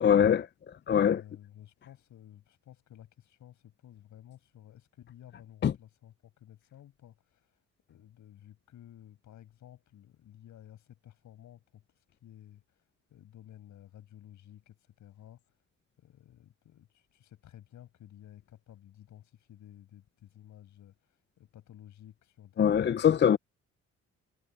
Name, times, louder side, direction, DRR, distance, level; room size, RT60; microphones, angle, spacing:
voice 1, 0.0-0.5 0.9-1.2 5.6-5.7 22.6-23.4, left 8 dB, 35° left, 0.5 m, -22 dB
voice 2, 0.8-7.5 7.9-11.8 12.2-12.6 13.1-15.4 16.0-23.4, left 11 dB, 75° left, 6.4 m, -53 dB
cardioid pair, 90°, 30 cm